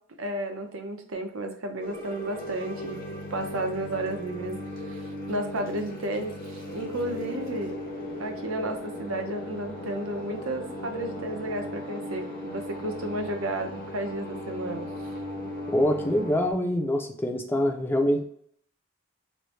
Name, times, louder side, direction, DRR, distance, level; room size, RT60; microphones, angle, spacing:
voice 1, 0.2-3.0 3.3-4.6 4.8-7.8 8.2-14.9, right 1 dB, 85° right, 5 dB, 0.6 m, -32 dB
sound 1, 1.8-16.5, left 1 dB, 45° left, 0.7 m, -37 dB
voice 2, 15.7-18.2, left 1 dB, 10° left, 4 dB, 0.4 m, -25 dB
3.2 x 2.0 x 4.1 m, 0.67 s
head